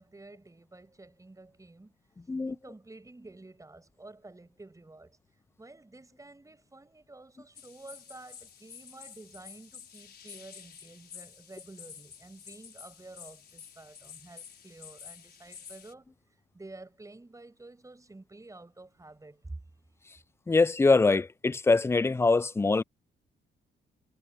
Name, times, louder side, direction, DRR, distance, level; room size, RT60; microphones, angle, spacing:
voice 1, 0.0-1.9 2.4-5.2 5.6-16.1 16.5-19.6, right 2 dB, 15° right, 7.0 m, -50 dB
sound 1, 7.5-15.9, left 8 dB, 55° left, 5.1 m, -50 dB
voice 2, 20.5-22.8, left 3 dB, 15° left, 0.4 m, -23 dB
cardioid pair, 90°, 20 cm